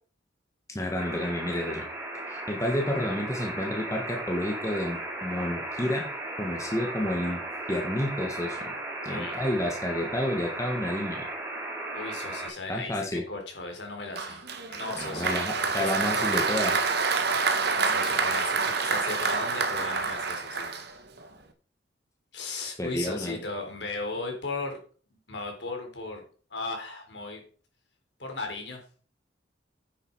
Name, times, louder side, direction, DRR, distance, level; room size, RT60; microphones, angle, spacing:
voice 1, 0.7-1.8 2.3-6.1 6.4-7.4 7.7-8.7 9.0-11.2 12.7-13.2 14.9-16.8 22.8-23.4, left 1 dB, 15° left, 0 dB, 1.5 m, -30 dB
sound 1, 1.0-12.5, right 2 dB, 10° right, 3.1 m, -36 dB
voice 2, 9.1-9.4 11.9-14.4 14.7-16.5 17.7-20.7 22.3-24.8 25.1-26.2 26.5-27.4 28.2-28.8, left 3 dB, 65° left, 3 dB, 3.7 m, -36 dB
Applause, 14.2-21.3, right 4 dB, 60° right, 1.4 m, -27 dB
9.7 x 8.0 x 4.7 m, 0.42 s
head